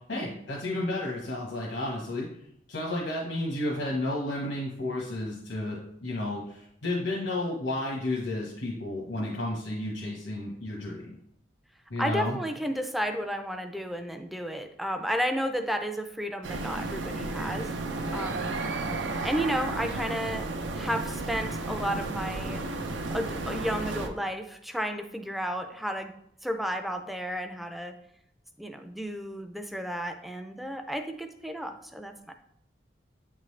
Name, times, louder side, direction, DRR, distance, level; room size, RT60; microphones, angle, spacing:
voice 1, 0.1-2.3 2.7-11.1 11.9-12.4, left 1 dB, 85° left, -4 dB, 1.1 m, -32 dB
voice 2, 12.0-17.7 18.1-18.5 19.2-22.6 23.1-26.1 26.4-28.0 28.6-32.3, equal, ahead, 6 dB, 0.4 m, -32 dB
sound 1, 16.4-24.1, right 2 dB, 80° right, 0.6 m, -33 dB
8.8 x 3.8 x 3.2 m, 0.75 s
head